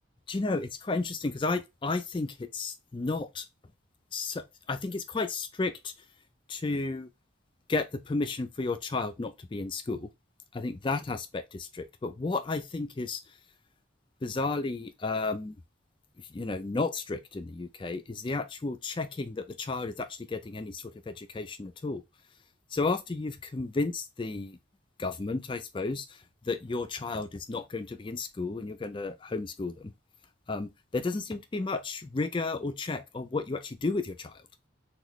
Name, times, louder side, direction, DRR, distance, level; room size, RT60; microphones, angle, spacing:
voice 1, 0.3-3.5 4.1-5.9 6.5-7.1 7.7-10.1 10.5-13.2 14.2-15.6 16.3-22.0 22.7-24.6 25.0-29.9 30.5-34.4, left 3 dB, 25° left, 0.3 m, -33 dB
3.9 x 2.3 x 3.0 m
head